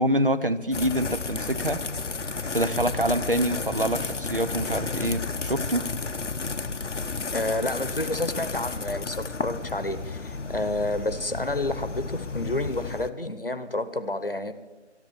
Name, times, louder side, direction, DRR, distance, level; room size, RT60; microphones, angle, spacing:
voice 1, 0.0-1.8 2.5-5.9, right 1 dB, 50° right, 11 dB, 0.8 m, -26 dB
sound 1, 0.7-13.1, left 4 dB, 80° left, 0.9 m, -32 dB
voice 2, 7.3-14.5, left 2 dB, 50° left, 11 dB, 1.0 m, -29 dB
13.5 x 10.5 x 8.0 m, 1.2 s
figure-of-eight pair, 180°, 35 cm